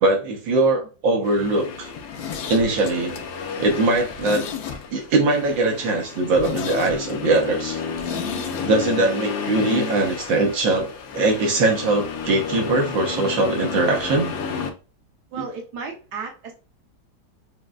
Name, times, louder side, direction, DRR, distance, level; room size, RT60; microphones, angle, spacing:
voice 1, 0.0-1.9 2.5-3.2 3.6-4.4 4.9-7.8 8.7-14.3 15.4-15.5, right 2 dB, 80° right, 2 dB, 1.6 m, -21 dB
Accelerating revving vroom, 1.2-14.7, left 5 dB, 70° left, 1.1 m, -32 dB
Zipper (clothing), 1.9-5.2 5.5-5.6 5.9-6.0 6.3-8.7 9.0-9.1, left 7 dB, 85° left, 1.4 m, -33 dB
voice 2, 15.3-16.5, right 5 dB, 60° right, 1 dB, 1.4 m, -34 dB
6.2 x 2.1 x 2.4 m, 0.34 s
omnidirectional pair, 2.0 m